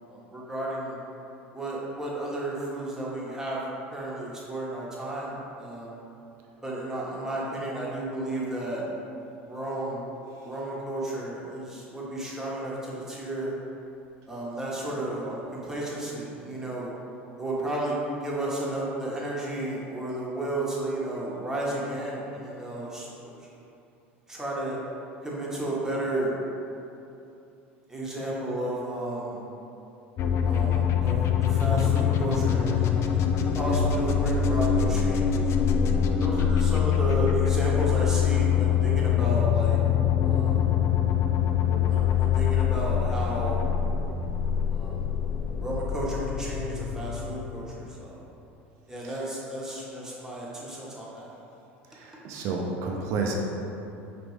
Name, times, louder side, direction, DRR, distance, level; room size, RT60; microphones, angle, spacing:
voice 1, 0.1-1.0 1.5-3.6 3.9-5.9 6.6-8.8 9.5-13.5 14.3-16.9 17.4-17.9 18.2-23.3 24.3-24.8 25.2-26.3 27.9-29.4 30.4-35.3 36.1-39.8 40.2-40.6 41.9-43.6 44.7-45.0 45.6-48.2 48.9-51.3, right 1 dB, 10° right, -6 dB, 1.1 m, -33 dB
sound 1, 30.2-47.9, left 8 dB, 45° left, 0.3 m, -24 dB
voice 2, 49.0-49.3 51.9-53.3, right 4 dB, 55° right, 0 dB, 0.5 m, -31 dB
5.1 x 3.0 x 3.1 m, 2.8 s
hypercardioid pair, 75°, 6 cm